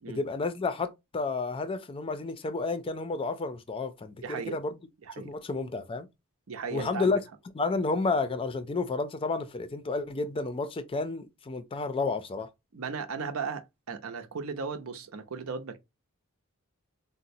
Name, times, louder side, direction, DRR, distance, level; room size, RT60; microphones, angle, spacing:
voice 1, 0.1-4.7 5.2-6.1 6.7-7.2 7.5-12.5, left 3 dB, 25° left, 0.4 m, -31 dB
voice 2, 4.2-4.6 5.0-5.3 6.5-7.2 12.7-15.8, right 5 dB, 80° right, 0.6 m, -36 dB
3.9 x 2.1 x 2.6 m
head